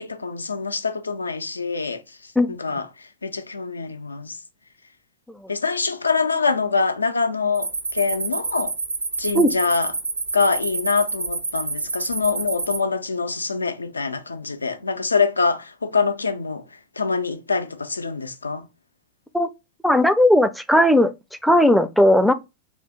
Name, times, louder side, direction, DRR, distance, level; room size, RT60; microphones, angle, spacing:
voice 1, 0.0-2.0 2.5-4.4 5.5-8.7 9.2-9.9 10.3-16.6 17.0-18.7, left 4 dB, 80° left, 0.4 m, -24 dB
sound 1, 7.5-12.8, right 3 dB, 80° right, 0.4 m, -28 dB
voice 2, 19.8-21.1 21.4-22.3, left 1 dB, ahead, 0.4 m, -16 dB
2.6 x 2.5 x 3.4 m
figure-of-eight pair, 90°, 0 cm